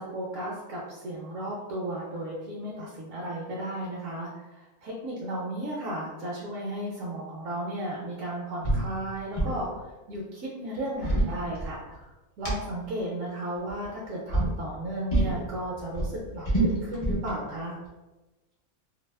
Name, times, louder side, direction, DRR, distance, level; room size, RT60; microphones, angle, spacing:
voice 1, 0.0-9.8 10.1-12.1 12.4-17.8, right 1 dB, 70° right, -4 dB, 0.9 m, -34 dB
sound 1, 8.6-8.9 9.1-9.6 10.8-12.0 12.4-12.5 13.6-13.9 14.3-14.5 15.1-15.4 15.8-17.3, right 2 dB, 60° left, 0.3 m, -26 dB
2.7 x 2.2 x 2.3 m, 1.1 s
omnidirectional pair, 1.6 m